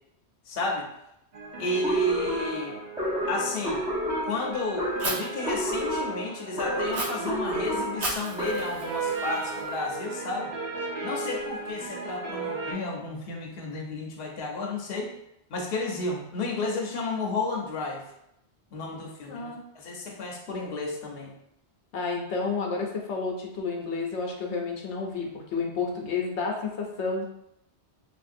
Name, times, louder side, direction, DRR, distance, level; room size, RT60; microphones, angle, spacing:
voice 1, 0.5-0.9 1.6-2.8 3.3-3.8 4.2-10.5 11.0-15.1 15.5-18.0 18.7-21.3, left 2 dB, 65° left, 0 dB, 0.8 m, -32 dB
sound 1, 1.3-12.7, right 3 dB, 55° right, 0.5 m, -36 dB
voice 2, 1.6-2.1 19.3-19.6 21.9-27.2, left 4 dB, 90° left, 1 dB, 0.9 m, -31 dB
sound 2, 1.8-8.9, equal, 5° right, 0.4 m, -31 dB
Fire, 5.0-5.1 6.9-7.0 8.0-10.0, right 2 dB, 75° right, 1.1 m, -34 dB
3.2 x 2.5 x 2.5 m, 0.80 s
omnidirectional pair, 1.1 m